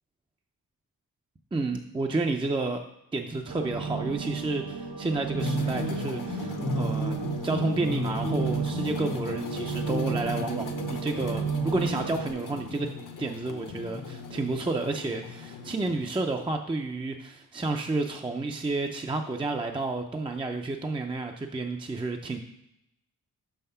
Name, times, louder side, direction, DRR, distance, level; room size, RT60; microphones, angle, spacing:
voice 1, 1.5-2.8 3.1-7.2 7.4-12.9 13.2-22.4, right 3 dB, 15° right, 3 dB, 0.4 m, -30 dB
sound 1, 3.5-12.3, right 5 dB, 85° right, 1.3 m, -32 dB
sound 2, 5.4-16.1, left 5 dB, 60° left, 0.9 m, -36 dB
6.4 x 5.6 x 5.5 m, 0.82 s
wide cardioid pair, 155°, 36 cm